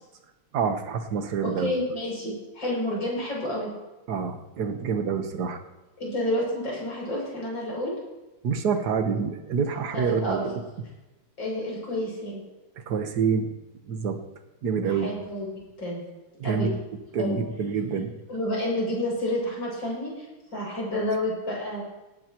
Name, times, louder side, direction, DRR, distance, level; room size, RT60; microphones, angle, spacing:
voice 1, 0.5-1.7 4.1-5.6 8.4-10.6 12.9-13.5 13.9-14.2 14.6-15.1 16.4-16.7 17.1-18.1, right 6 dB, 55° right, 6 dB, 1.6 m, -27 dB
voice 2, 1.4-3.7 6.0-7.9 9.9-10.6 11.4-12.4 14.8-16.0 16.4-16.7 17.2-17.4 18.3-21.8, left 1 dB, 60° left, -4 dB, 7.7 m, -30 dB
18.0 x 17.5 x 3.1 m, 1.1 s
omnidirectional pair, 2.4 m